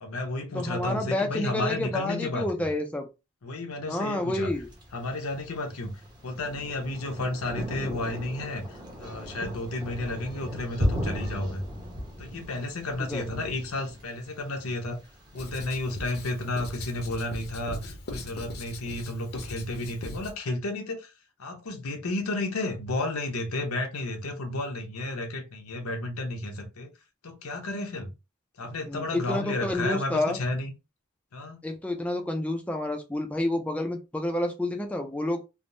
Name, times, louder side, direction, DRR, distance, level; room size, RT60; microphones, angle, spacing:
voice 1, 0.0-2.5 3.4-4.5 4.9-11.6 12.2-15.0 15.3-21.1 21.4-26.9 27.2-28.1 28.6-30.7 31.3-31.6, left 2 dB, 85° left, 0.8 m, -32 dB
voice 2, 0.5-3.1 3.9-4.7 13.1-13.2 28.9-30.4 31.6-35.4, left 1 dB, 5° left, 0.4 m, -29 dB
Thunder, 4.5-16.4, left 1 dB, 20° right, 0.7 m, -37 dB
Writing, 15.3-20.4, left 1 dB, 50° left, 0.6 m, -40 dB
3.3 x 2.0 x 2.6 m
head